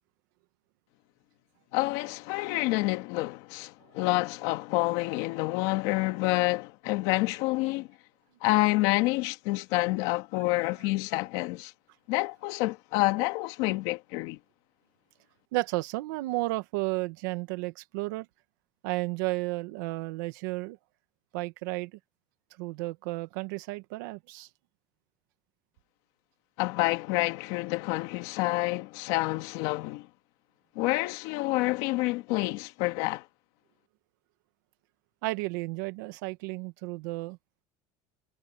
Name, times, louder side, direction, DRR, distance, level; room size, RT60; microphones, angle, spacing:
voice 1, 1.7-7.9 8.4-11.7 12.1-14.4 26.6-30.1 30.8-33.3, left 20 dB, 65° left, 1.9 m, -28 dB
voice 2, 15.5-18.3 18.8-20.8 21.3-22.0 22.6-24.5 35.2-37.4, right 21 dB, 85° right, 1.4 m, -33 dB
cardioid pair, 175°, 10 cm